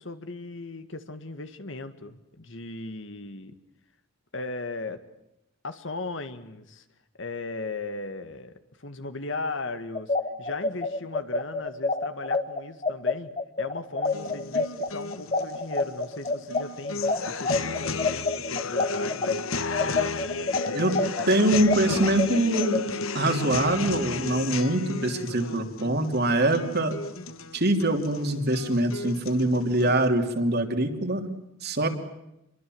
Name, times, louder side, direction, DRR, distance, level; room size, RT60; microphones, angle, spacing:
voice 1, 0.0-3.5 4.3-5.0 5.6-6.8 7.2-13.3 13.6-21.0, left 2 dB, 60° left, 10 dB, 1.9 m, -37 dB
sound 1, 9.9-19.3 19.7-22.8, left 3 dB, 30° left, 1.7 m, -27 dB
sound 2, 14.0-30.0, left 4 dB, 80° left, 1.3 m, -34 dB
voice 2, 21.3-22.8 23.1-26.9 27.5-31.2 31.6-31.9, right 1 dB, 50° right, 5 dB, 3.0 m, -24 dB
28.0 x 23.0 x 7.9 m, 0.87 s
head